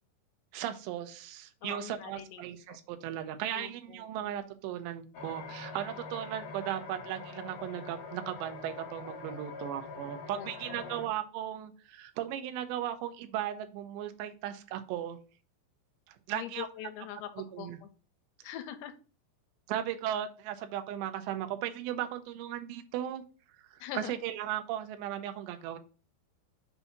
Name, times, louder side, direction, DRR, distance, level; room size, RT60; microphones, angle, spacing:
voice 1, 0.5-15.2 16.1-16.7 17.3-17.8 19.7-23.2 23.7-25.8, right 11 dB, 85° right, 9 dB, 2.9 m, -37 dB
voice 2, 1.6-2.4 3.5-4.1 10.3-10.9 16.3-17.9 18.4-18.9 23.8-24.2, left 12 dB, 85° left, 10 dB, 2.8 m, -43 dB
sound 1, 5.1-11.1, left 4 dB, 70° left, 1.9 m, -44 dB
6.9 x 2.7 x 5.8 m, 0.36 s
omnidirectional pair, 5.0 m